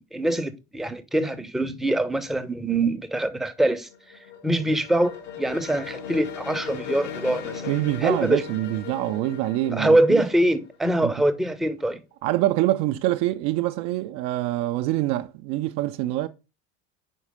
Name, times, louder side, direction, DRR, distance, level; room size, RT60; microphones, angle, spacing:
voice 1, 0.0-3.9 4.4-7.7 8.0-8.4 9.7-12.0, right 1 dB, ahead, 0.7 m, -23 dB
sound 1, 3.5-11.3, left 8 dB, 70° left, 1.1 m, -38 dB
voice 2, 7.7-10.2 11.0-11.1 12.2-16.3, right 15 dB, 45° right, 0.5 m, -25 dB
5.3 x 4.7 x 5.2 m
figure-of-eight pair, 60°, 37 cm